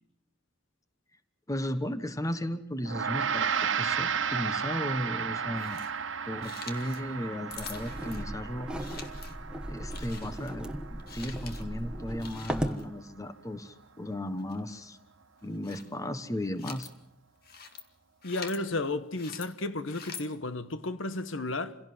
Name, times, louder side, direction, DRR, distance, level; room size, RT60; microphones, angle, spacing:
voice 1, 1.5-5.8 6.3-8.7 9.7-15.0 15.4-16.9, left 1 dB, 15° left, 1.2 m, -35 dB
Gong, 2.8-12.4, right 6 dB, 75° right, 1.3 m, -34 dB
sound 1, 5.6-5.9 6.4-7.0 7.5-8.2 8.8-9.4 9.9-10.6 11.0-11.6 12.2-12.9 14.4-14.6 15.4-15.9 16.3-16.9 17.4-17.8 18.2-18.6 19.1-19.5 19.9-20.2, left 6 dB, 50° left, 2.1 m, -45 dB
sound 2, 7.5-12.8, right 1 dB, 5° right, 1.3 m, -37 dB
voice 2, 18.2-21.8, left 2 dB, 85° left, 1.2 m, -33 dB
28.0 x 17.0 x 7.8 m
head